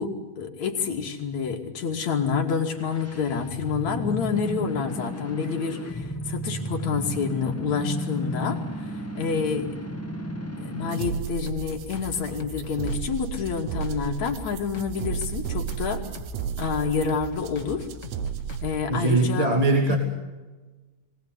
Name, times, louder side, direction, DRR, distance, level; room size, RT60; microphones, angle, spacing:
voice 1, 0.0-9.7 10.6-16.0 16.6-17.9 18.6-19.5 19.9-20.0, left 6 dB, 65° left, 2 dB, 3.8 m, -28 dB
sound 1, 2.6-11.2, equal, 15° left, 0.5 m, -34 dB
sound 2, 10.9-18.7, right 9 dB, 75° right, 2.3 m, -33 dB
sound 3, 11.5-19.0, left 1 dB, 30° left, 1.9 m, -40 dB
voice 2, 18.9-20.0, right 2 dB, 15° right, 2 dB, 2.3 m, -21 dB
24.5 x 19.5 x 9.6 m, 1.3 s
omnidirectional pair, 3.5 m